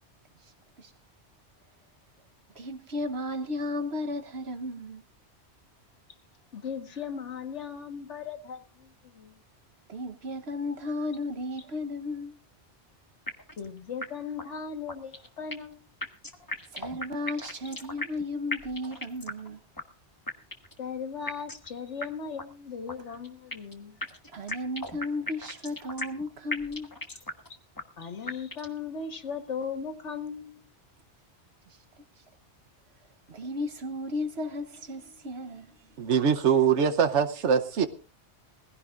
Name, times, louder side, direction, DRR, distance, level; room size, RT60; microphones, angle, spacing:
voice 1, 0.4-0.9 2.5-5.0 9.9-12.4 16.7-19.6 24.3-26.9 31.7-31.8 33.3-35.8, left 2 dB, 65° right, 1.3 m, -34 dB
voice 2, 6.5-9.4 13.6-15.8 20.8-24.0 27.1-27.2 28.0-30.6, left 6 dB, 85° left, 1.8 m, -37 dB
sound 1, 13.3-13.7 14.0-14.1 14.4-14.5 14.9-15.7 16.0-18.2 18.5-19.5 19.8-19.9 20.3-20.8 21.3-21.7 22.0-22.1 22.4-22.5 22.9-23.7 24.0-26.2 26.5-27.5 27.8-27.9 28.3-28.8, left 1 dB, 20° left, 1.3 m, -36 dB
voice 3, 36.0-37.9, right 7 dB, 90° right, 1.2 m, -23 dB
20.5 x 15.5 x 2.5 m
omnidirectional pair, 1.2 m